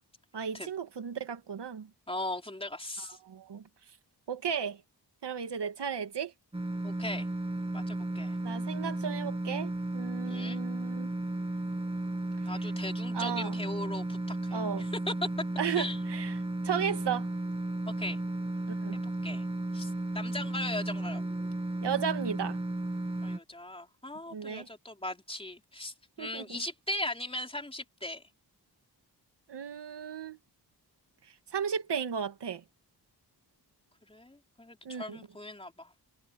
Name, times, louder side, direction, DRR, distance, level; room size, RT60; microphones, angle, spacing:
voice 1, 0.3-1.9 3.0-3.6 4.3-4.8 5.2-6.3 8.4-11.1 13.1-13.6 14.5-14.9 15.6-17.3 18.7-19.0 21.8-22.6 24.3-24.7 26.2-26.6 29.5-30.4 31.5-32.6 34.8-35.3, right 7 dB, 90° right, 2.2 m, -35 dB
voice 2, 2.1-3.2 6.8-7.3 7.7-8.4 10.3-10.6 12.5-15.1 15.7-16.0 17.9-18.2 18.9-19.4 19.7-21.2 23.2-28.2 34.1-35.9, left 1 dB, 15° left, 3.9 m, -39 dB
sound 1, 6.5-23.4, right 1 dB, 15° right, 2.4 m, -34 dB
wide cardioid pair, 160°, 40 cm